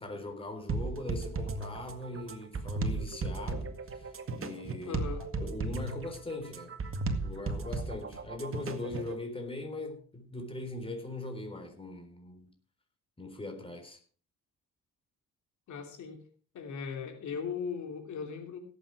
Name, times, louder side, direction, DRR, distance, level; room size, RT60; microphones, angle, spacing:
voice 1, 0.0-4.1 4.4-5.0 5.3-6.7 7.2-12.5 13.2-14.0, left 2 dB, 20° left, 3.9 m, -40 dB
sound 1, 0.7-9.1, right 3 dB, 45° right, 2.1 m, -35 dB
voice 2, 4.9-5.2 15.7-16.2 16.5-18.6, left 6 dB, 70° left, 3.0 m, -38 dB
17.0 x 8.4 x 4.8 m
cardioid pair, 90°, 30 cm